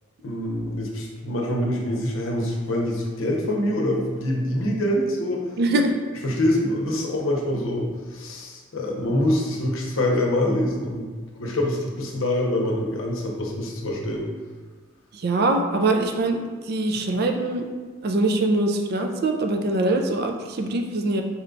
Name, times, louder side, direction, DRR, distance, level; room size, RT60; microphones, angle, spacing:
voice 1, 0.2-5.6 6.2-11.1 11.4-14.3, left 1 dB, 85° left, 0 dB, 0.7 m, -25 dB
voice 2, 5.6-5.9 15.1-16.4 16.7-17.6 18.0-21.2, right 2 dB, 50° right, 5 dB, 0.4 m, -23 dB
4.2 x 2.3 x 3.8 m, 1.5 s
head